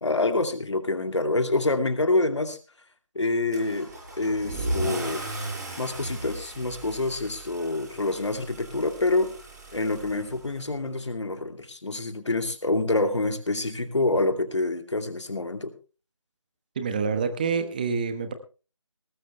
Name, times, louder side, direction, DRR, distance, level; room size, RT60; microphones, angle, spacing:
voice 1, 0.0-2.6 3.1-3.9 4.2-5.4 5.8-9.3 9.7-15.7, left 2 dB, 60° left, 2.5 m, -26 dB
Car / Engine starting / Accelerating revving vroom, 3.5-10.9, right 1 dB, 35° right, 7.7 m, -36 dB
voice 2, 16.8-18.3, right 5 dB, 15° right, 1.1 m, -27 dB
19.0 x 14.0 x 3.3 m
figure-of-eight pair, 165°, 16 cm